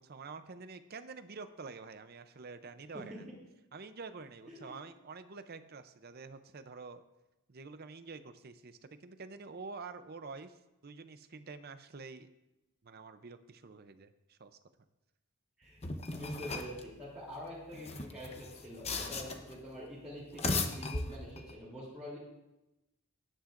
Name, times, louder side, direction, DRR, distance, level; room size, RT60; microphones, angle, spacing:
voice 1, 0.0-3.3 3.7-7.0 7.5-12.3 12.8-14.5, right 4 dB, 45° right, 10 dB, 0.6 m, -48 dB
voice 2, 4.5-4.8 15.6-15.8 16.1-22.2, equal, 5° right, -9 dB, 3.0 m, -45 dB
sound 1, 15.8-16.8 17.7-19.6 20.2-21.5, left 3 dB, 30° left, 0.8 m, -37 dB
18.5 x 10.0 x 2.6 m, 0.97 s
head